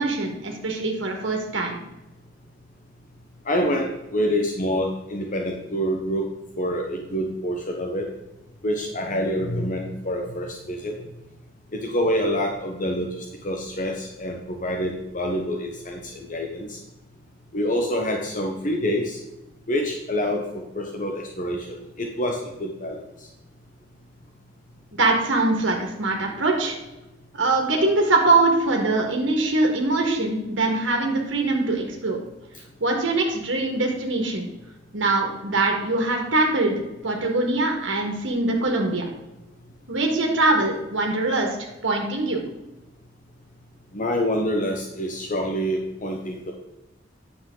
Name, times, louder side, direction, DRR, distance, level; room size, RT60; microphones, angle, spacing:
voice 1, 0.0-1.8 24.9-26.8 27.3-32.2 32.8-34.5 34.9-36.7 37.0-39.1 39.9-41.6 41.8-42.4, right 2 dB, 90° right, 1 dB, 1.8 m, -22 dB
voice 2, 3.4-6.2 6.6-8.1 8.6-10.9 11.7-16.8 17.5-19.2 19.7-23.0 43.9-46.5, equal, 45° left, 1 dB, 1.0 m, -26 dB
9.5 x 7.1 x 3.9 m, 0.97 s
head